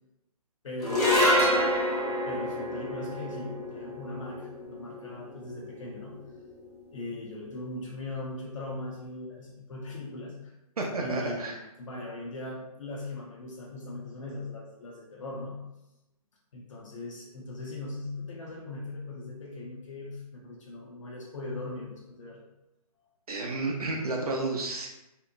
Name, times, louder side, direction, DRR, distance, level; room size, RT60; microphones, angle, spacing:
voice 1, 0.6-1.6 2.1-6.2 6.9-10.5 11.0-15.6 16.5-22.5, left 2 dB, 55° left, -2 dB, 0.6 m, -39 dB
sound 1, 0.8-7.3, left 1 dB, 85° left, 1.1 m, -28 dB
voice 2, 10.8-11.5 23.3-24.9, right 2 dB, 75° right, 0 dB, 0.5 m, -31 dB
2.9 x 2.1 x 2.5 m, 0.94 s
figure-of-eight pair, 135°, 19 cm